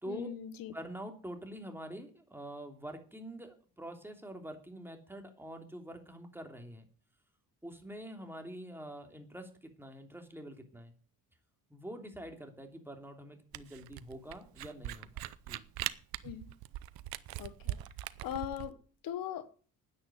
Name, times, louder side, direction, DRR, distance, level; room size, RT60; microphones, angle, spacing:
voice 1, 0.1-0.7 16.2-16.5 17.4-17.8 18.2-18.8 19.0-19.5, left 11 dB, 70° left, 1.2 m, -40 dB
voice 2, 0.7-6.9 7.6-10.9 11.7-15.6, right 1 dB, 5° right, 2.9 m, -46 dB
Camera, 13.5-18.7, right 15 dB, 80° right, 0.8 m, -40 dB
9.9 x 8.9 x 9.3 m
cardioid pair, 100°, 35 cm